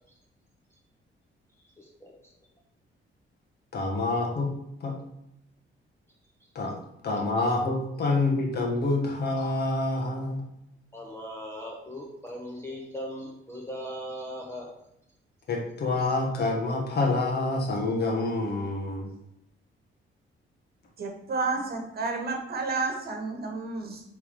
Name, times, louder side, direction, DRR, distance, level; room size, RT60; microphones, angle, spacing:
voice 1, 1.6-2.1 7.1-7.5 10.9-14.7, equal, 10° left, -2 dB, 0.9 m, -39 dB
voice 2, 3.7-4.5 4.8-4.9 6.5-6.7 7.0-10.4 15.5-19.1, left 2 dB, 50° left, 0 dB, 1.5 m, -27 dB
voice 3, 21.0-24.0, right 3 dB, 45° right, 3 dB, 1.3 m, -31 dB
8.0 x 3.6 x 5.4 m, 0.81 s
wide cardioid pair, 180°, 21 cm